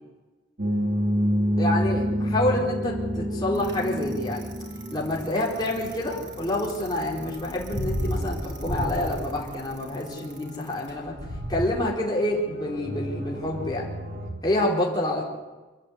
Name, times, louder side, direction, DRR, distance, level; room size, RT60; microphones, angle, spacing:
sound 1, 0.6-14.3, equal, 50° right, 3.6 m, -31 dB
voice 1, 1.6-4.5 4.9-11.1 11.5-13.8 14.4-15.2, left 1 dB, 20° left, -4 dB, 4.4 m, -27 dB
Bicycle, 3.5-11.6, equal, 70° right, 5.7 m, -33 dB
26.0 x 12.0 x 9.7 m, 1.2 s
head